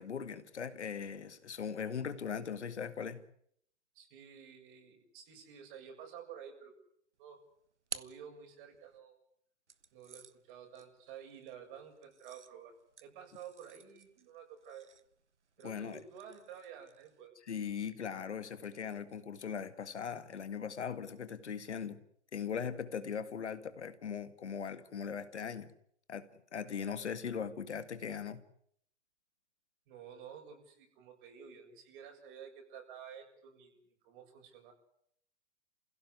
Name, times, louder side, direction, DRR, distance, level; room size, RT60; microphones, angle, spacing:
voice 1, 0.0-3.2 15.6-16.0 17.5-22.0 22.3-25.7 26.1-28.4, left 7 dB, 75° left, 2.0 m, -39 dB
voice 2, 3.9-6.7 7.2-7.4 7.9-9.2 9.9-12.7 13.0-14.9 15.6-17.4 29.9-33.8 34.0-34.7, right 8 dB, 45° right, 7.4 m, -51 dB
sound 1, 7.2-9.0 9.7-17.3, right 6 dB, 85° right, 1.4 m, -53 dB
28.0 x 16.5 x 9.7 m
hypercardioid pair, 120°, 34 cm